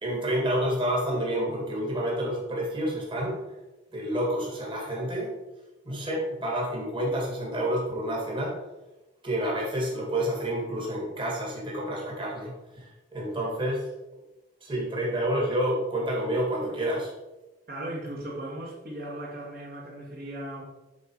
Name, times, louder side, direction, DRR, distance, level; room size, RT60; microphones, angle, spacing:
voice 1, 0.0-3.4 3.9-5.3 5.9-8.5 9.2-12.9 13.1-13.8 14.6-17.1, right 1 dB, 30° right, -3 dB, 1.9 m, -29 dB
voice 2, 17.7-20.6, right 1 dB, 55° right, -2 dB, 1.9 m, -37 dB
8.5 x 4.0 x 4.8 m, 1.0 s
head